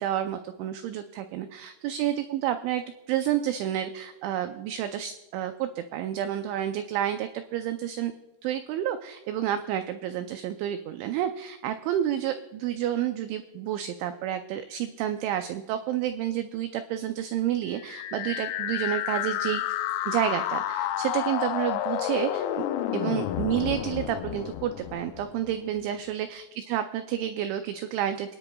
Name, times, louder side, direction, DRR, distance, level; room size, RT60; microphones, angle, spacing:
voice 1, 0.0-8.1 8.4-19.6 20.1-22.6 22.9-28.4, right 11 dB, 85° right, 8 dB, 2.7 m, -30 dB
sound 1, 17.7-25.7, left 11 dB, 85° left, 3.3 m, -30 dB
28.5 x 10.0 x 2.3 m, 1.2 s
omnidirectional pair, 5.9 m